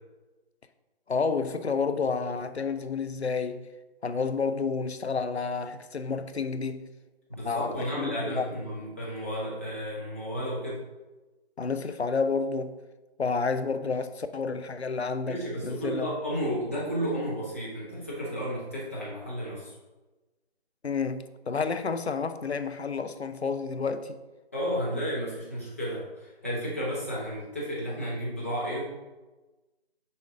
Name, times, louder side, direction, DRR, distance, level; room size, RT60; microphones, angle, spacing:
voice 1, 1.1-3.6 4.0-6.9 7.4-8.5 11.6-12.8 13.2-15.4 15.6-16.1 20.8-24.2, left 5 dB, 75° left, 0.6 m, -30 dB
voice 2, 7.3-10.8 15.2-19.7 24.5-28.8, equal, 15° left, 0.8 m, -32 dB
6.8 x 4.6 x 3.6 m
figure-of-eight pair, 160°, 33 cm